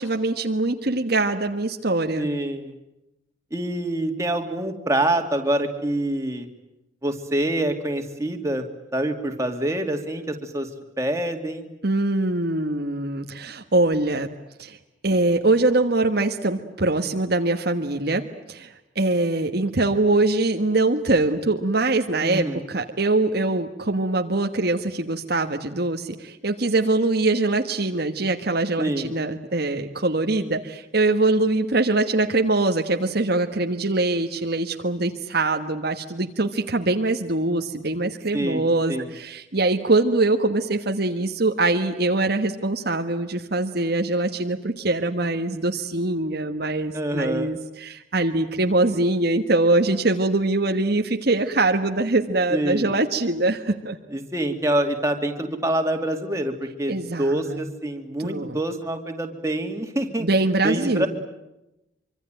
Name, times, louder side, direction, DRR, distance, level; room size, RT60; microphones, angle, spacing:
voice 1, 0.0-2.3 11.8-14.3 14.6-14.8 15.0-18.2 18.5-54.0 56.9-57.6 58.2-58.6 60.2-61.1, right 2 dB, 50° right, 5 dB, 1.4 m, -23 dB
voice 2, 2.2-2.7 3.5-6.5 7.0-10.7 11.0-11.7 22.2-22.7 28.8-29.1 38.3-39.1 46.9-47.5 52.5-52.9 54.1-60.3 60.6-61.1, right 1 dB, 15° right, 4 dB, 2.6 m, -26 dB
25.0 x 25.0 x 9.1 m, 0.92 s
head